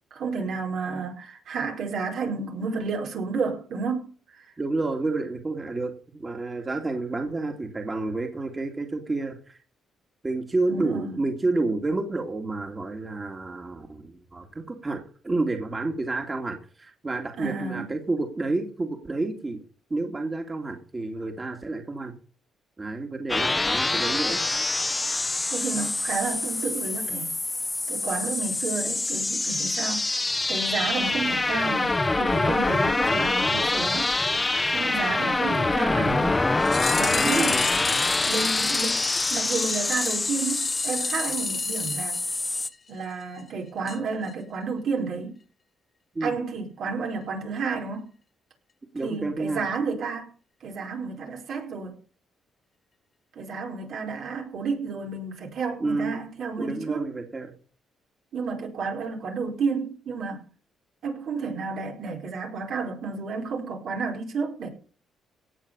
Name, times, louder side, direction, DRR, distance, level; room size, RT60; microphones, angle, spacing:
voice 1, 0.1-4.5 10.7-11.2 17.4-18.0 25.5-27.3 27.9-30.1 30.5-34.1 34.7-36.3 37.0-37.6 38.3-42.2 42.9-45.4 46.2-48.1 49.0-50.3 50.6-51.9 53.3-57.1 58.3-60.4 61.0-64.7, right 4 dB, 70° right, 4.8 m, -31 dB
voice 2, 4.6-9.6 10.2-19.6 19.9-22.1 22.8-24.4 37.2-37.6 46.1-46.3 48.9-49.7 55.8-56.2 56.6-57.5, right 2 dB, 25° right, 2.7 m, -30 dB
sound 1, 23.3-42.7, left 2 dB, 20° left, 1.3 m, -25 dB
sound 2, 36.6-42.8 43.0-43.1 43.4-43.5 43.9-44.0 44.3-44.4, left 5 dB, 40° left, 0.6 m, -31 dB
17.5 x 6.7 x 7.1 m
cardioid pair, 90°, 0 cm